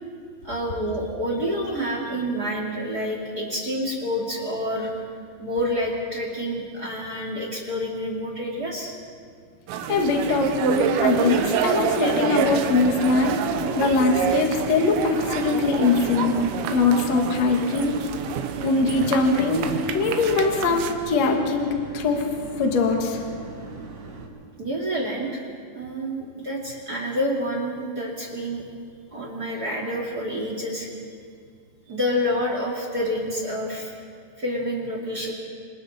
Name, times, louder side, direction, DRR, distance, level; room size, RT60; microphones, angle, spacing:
voice 1, 0.4-4.9 5.4-8.9 24.6-25.4 25.7-28.6 29.1-30.9 31.9-33.9 34.4-35.3, equal, 35° right, -1 dB, 1.5 m, -28 dB
sound 1, 9.7-20.9, right 7 dB, 85° right, 3.8 m, -27 dB
voice 2, 9.9-13.4 13.7-16.3 16.7-17.9 18.6-19.6 19.9-22.2 22.6-23.2, left 3 dB, 70° left, 2 dB, 1.6 m, -22 dB
sound 2, 12.3-24.3, right 3 dB, 65° right, 5.3 m, -40 dB
28.0 x 27.0 x 4.3 m, 2.2 s
omnidirectional pair, 5.9 m